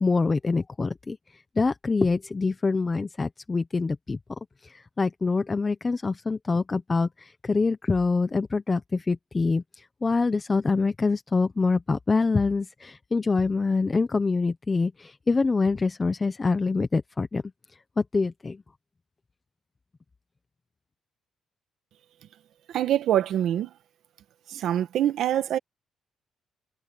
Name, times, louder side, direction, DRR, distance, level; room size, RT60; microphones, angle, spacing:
voice 1, 0.0-4.2 4.6-17.4 18.0-18.6, left 4 dB, 25° left, 1.0 m, -25 dB
voice 2, 22.7-23.7 24.5-25.6, right 11 dB, 75° right, 1.8 m, -25 dB
cardioid pair, 90°, 0 cm